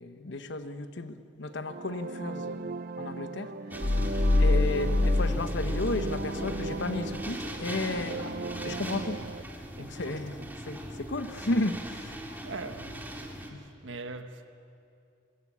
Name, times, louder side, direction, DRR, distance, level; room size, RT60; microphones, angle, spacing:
voice 1, 0.0-4.0 4.4-8.4 8.6-9.2 9.8-12.2 13.5-13.6, left 2 dB, 65° left, 1.1 m, -34 dB
sound 1, 1.5-9.4, right 2 dB, 50° right, 0.7 m, -37 dB
sound 2, 3.7-13.5, equal, 10° right, 2.4 m, -40 dB
sound 3, 3.8-6.7, left 2 dB, 40° left, 0.8 m, -26 dB
voice 2, 9.8-10.5 12.4-13.1 13.5-14.5, right 3 dB, 70° right, 1.5 m, -42 dB
24.5 x 22.0 x 8.6 m
head